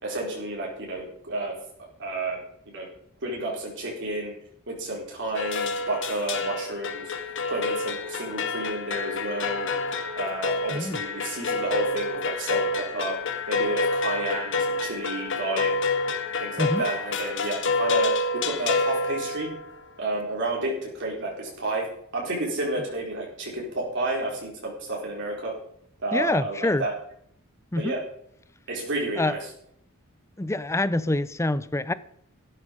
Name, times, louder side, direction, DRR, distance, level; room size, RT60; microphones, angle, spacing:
voice 1, 0.0-1.6 2.0-2.4 2.7-2.9 3.2-4.3 4.7-7.1 7.5-9.7 10.1-13.2 13.5-15.7 16.4-19.5 20.0-21.9 22.1-25.5 26.0-26.9 27.8-28.0 28.7-29.4, right 2 dB, 55° right, 4.6 m, -31 dB
sound 1, 5.3-19.8, left 3 dB, 60° left, 1.8 m, -28 dB
voice 2, 26.1-26.9 27.7-27.9 29.2-29.4 30.4-31.9, left 2 dB, 15° left, 0.5 m, -25 dB
15.0 x 12.0 x 5.4 m
head